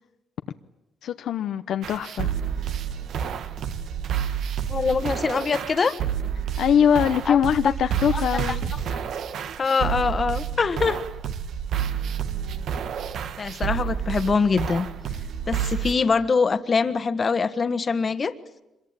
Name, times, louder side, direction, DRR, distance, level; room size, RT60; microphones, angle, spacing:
voice 1, 1.0-2.3 6.6-8.7 9.8-9.9, left 8 dB, 75° left, 8 dB, 0.9 m, -22 dB
sound 1, 1.8-15.9, right 8 dB, 70° right, 1.4 m, -29 dB
voice 2, 4.7-5.9 7.3-7.4 8.1-8.2 8.5-8.6 8.9-9.0 9.6-11.0 13.4-14.8 15.5-18.3, left 5 dB, 40° left, 11 dB, 1.5 m, -23 dB
25.0 x 22.0 x 9.0 m, 0.95 s
cardioid pair, 90°, 0 cm